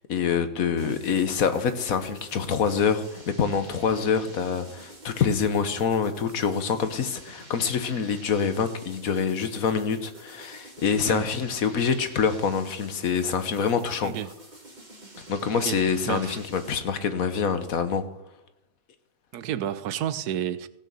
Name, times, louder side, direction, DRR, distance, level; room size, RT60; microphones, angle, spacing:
voice 1, 0.1-14.1 15.3-18.0, left 6 dB, 65° left, 1.4 m, -26 dB
sound 1, 0.8-17.0, right 2 dB, 30° right, 2.1 m, -47 dB
voice 2, 16.1-16.4 19.3-20.7, right 10 dB, 85° right, 1.2 m, -31 dB
16.5 x 6.3 x 6.9 m
omnidirectional pair, 1.6 m